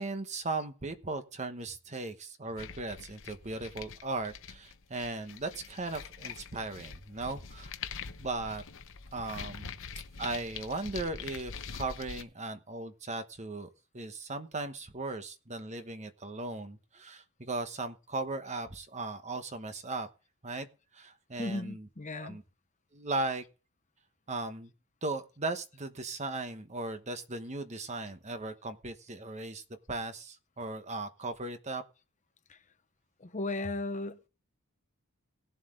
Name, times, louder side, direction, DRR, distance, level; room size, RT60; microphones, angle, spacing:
voice 1, 0.0-7.7 8.2-8.6 9.1-9.8 10.2-13.7 13.9-20.1 20.4-20.7 20.9-21.9 22.1-22.4 22.9-23.4 24.3-24.7 25.0-31.8, right 2 dB, 30° right, 1.1 m, -37 dB
sound 1, 2.6-12.2, left 6 dB, 60° left, 0.9 m, -44 dB
voice 2, 21.4-22.4 32.5-32.6 33.2-34.3, left 2 dB, 35° left, 0.9 m, -36 dB
18.0 x 7.7 x 3.7 m
head